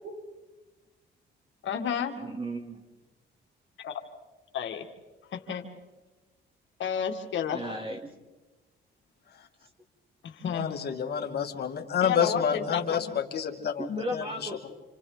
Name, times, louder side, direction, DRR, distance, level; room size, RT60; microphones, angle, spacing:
voice 1, 1.6-2.2 3.8-3.9 4.5-4.8 5.3-5.7 6.8-7.6 10.2-10.9 12.0-13.0, left 8 dB, 70° left, 4 dB, 2.1 m, -31 dB
voice 2, 2.2-2.8 7.5-8.1 13.8-14.7, right 1 dB, 25° right, 4 dB, 3.1 m, -35 dB
voice 3, 10.5-14.5, left 7 dB, 55° left, 3 dB, 2.3 m, -29 dB
28.5 x 27.5 x 4.0 m, 1.2 s
cardioid pair, 90°, 20 cm